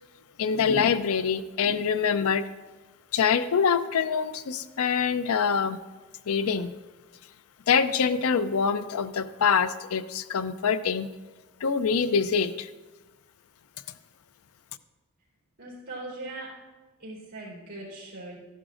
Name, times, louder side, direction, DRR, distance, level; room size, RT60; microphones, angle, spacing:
voice 1, 0.4-2.5 3.1-5.8 6.3-6.7 7.7-11.1 11.6-12.7, left 6 dB, 70° left, 13 dB, 0.5 m, -25 dB
voice 2, 15.6-16.6 17.0-18.4, right 2 dB, 45° right, -5 dB, 3.8 m, -40 dB
13.5 x 11.0 x 2.5 m, 1.2 s
head